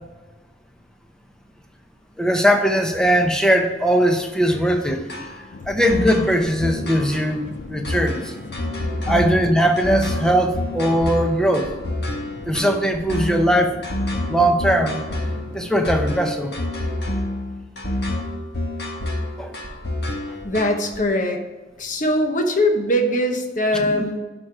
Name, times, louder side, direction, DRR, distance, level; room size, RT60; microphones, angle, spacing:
voice 1, 2.2-5.0 5.7-8.3 9.1-11.7 12.5-13.8 14.3-15.0 15.5-16.6 19.4-19.5 23.8-23.9, equal, 5° left, 4 dB, 0.7 m, -19 dB
sound 1, 5.1-21.0, left 1 dB, 65° left, 1.7 m, -28 dB
sound 2, 5.5-16.3, left 3 dB, 90° left, 0.6 m, -39 dB
voice 2, 20.4-21.4 21.8-24.2, left 1 dB, 45° left, 4 dB, 1.1 m, -21 dB
11.0 x 4.4 x 4.9 m, 1.2 s
head